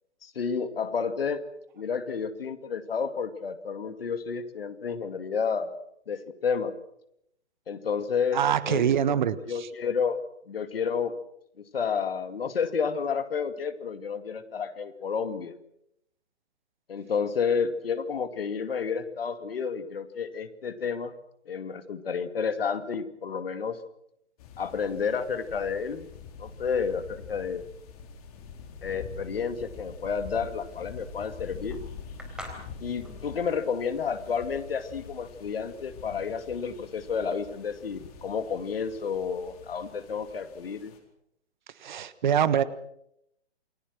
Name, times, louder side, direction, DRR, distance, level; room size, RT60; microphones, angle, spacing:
voice 1, 0.2-1.4 1.8-5.7 6.1-6.7 7.7-10.2 10.5-11.1 11.6-15.5 16.9-21.1 21.5-23.8 24.6-26.1 26.4-27.6 28.8-31.8 32.8-40.9, left 6 dB, 55° left, 10 dB, 2.5 m, -30 dB
voice 2, 8.3-9.4 41.8-42.6, right 9 dB, 40° right, 17 dB, 1.4 m, -24 dB
sound 1, 24.4-41.0, left 5 dB, 35° left, 4.4 m, -45 dB
sound 2, 30.6-35.6, equal, ahead, 3.9 m, -47 dB
28.5 x 21.5 x 6.2 m, 0.76 s
figure-of-eight pair, 130°, 34 cm